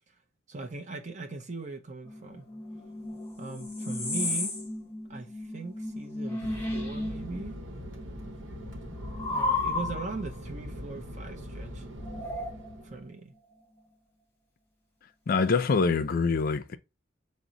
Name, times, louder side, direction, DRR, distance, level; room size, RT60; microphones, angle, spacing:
voice 1, 0.5-2.5 3.4-4.5 5.1-7.6 9.3-11.9 12.8-13.3, right 3 dB, 40° right, 0.7 m, -39 dB
sound 1, 2.1-7.6 7.9-10.3 12.0-13.0, left 2 dB, 10° left, 1.4 m, -34 dB
Fixed-wing aircraft airplane, 6.4-13.1, equal, 75° right, 1.0 m, -41 dB
voice 2, 15.3-16.8, left 4 dB, 50° left, 0.4 m, -25 dB
6.0 x 2.1 x 3.9 m
head